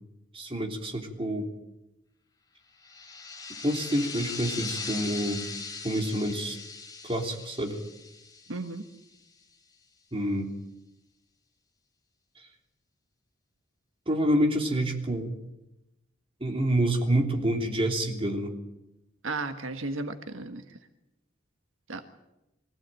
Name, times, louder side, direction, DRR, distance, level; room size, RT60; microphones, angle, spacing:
voice 1, 0.3-1.5 3.6-5.5 5.8-6.6 7.0-7.8 10.1-10.5 14.1-15.3 16.4-18.5, right 1 dB, 30° right, 2 dB, 3.3 m, -27 dB
sound 1, 2.8-9.1, left 4 dB, 20° left, 3.2 m, -39 dB
voice 2, 8.5-8.8 19.2-20.6 21.9-22.0, right 3 dB, 80° right, 8 dB, 1.6 m, -34 dB
23.5 x 16.5 x 9.1 m, 0.93 s
head